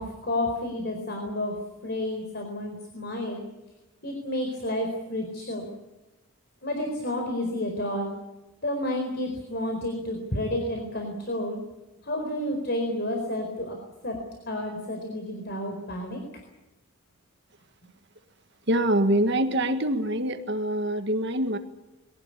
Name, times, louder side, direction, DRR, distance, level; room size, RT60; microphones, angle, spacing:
voice 1, 0.0-1.6 1.8-3.4 4.0-5.7 6.6-8.1 8.6-11.6 12.0-13.8 14.0-14.2 14.5-16.2, left 1 dB, 50° left, 3 dB, 4.4 m, -30 dB
voice 2, 18.7-21.6, right 1 dB, 50° right, 7 dB, 1.7 m, -24 dB
23.0 x 17.5 x 9.9 m, 1.0 s
head